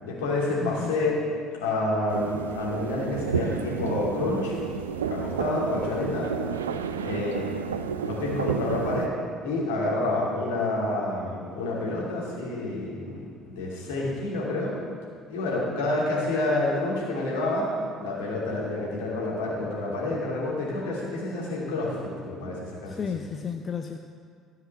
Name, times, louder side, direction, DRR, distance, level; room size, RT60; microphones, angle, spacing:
voice 1, 0.0-1.1 1.6-4.5 5.1-6.3 7.0-7.4 8.0-9.1 9.4-14.7 15.3-17.7 18.0-23.1, left 2 dB, 70° left, -5 dB, 2.9 m, -28 dB
voice 2, 0.6-1.1 23.0-24.0, left 7 dB, 35° left, 5 dB, 0.5 m, -32 dB
sound 1, 2.1-9.1, right 6 dB, 80° right, 0.4 m, -31 dB
14.0 x 5.8 x 6.1 m, 2.1 s
figure-of-eight pair, 55°, 0 cm